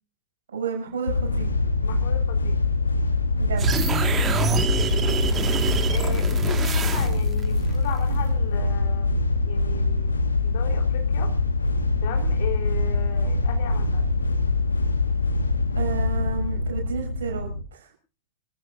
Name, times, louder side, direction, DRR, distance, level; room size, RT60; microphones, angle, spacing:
voice 1, 0.5-1.5 3.4-3.8 4.5-4.6 15.7-17.9, right 5 dB, 65° right, 2 dB, 6.5 m, -31 dB
sound 1, 1.1-17.6, left 3 dB, 75° left, 1.1 m, -23 dB
voice 2, 1.8-2.6 4.4-5.0 5.9-9.1 9.4-11.3 12.0-14.1, left 7 dB, 55° left, 4 dB, 3.3 m, -37 dB
sound 2, 3.6-7.4, right 6 dB, 20° right, 1.6 m, -27 dB
26.5 x 14.5 x 2.5 m, 0.36 s
figure-of-eight pair, 90°, 0 cm